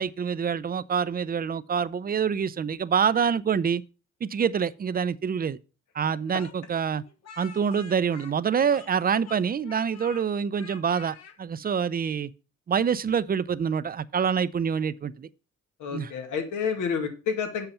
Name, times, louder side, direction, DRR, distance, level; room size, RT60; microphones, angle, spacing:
voice 1, 0.0-3.8 4.2-5.6 5.9-7.0 7.4-12.3 12.7-15.3 15.9-16.1, right 7 dB, 30° right, 0.5 m, -26 dB
Speech, 6.4-9.0 9.2-10.2 10.6-11.4, left 5 dB, 60° left, 1.3 m, -47 dB
voice 2, 15.8-17.7, left 6 dB, 80° left, 1.9 m, -29 dB
7.9 x 5.7 x 5.6 m
cardioid pair, 90°, 30 cm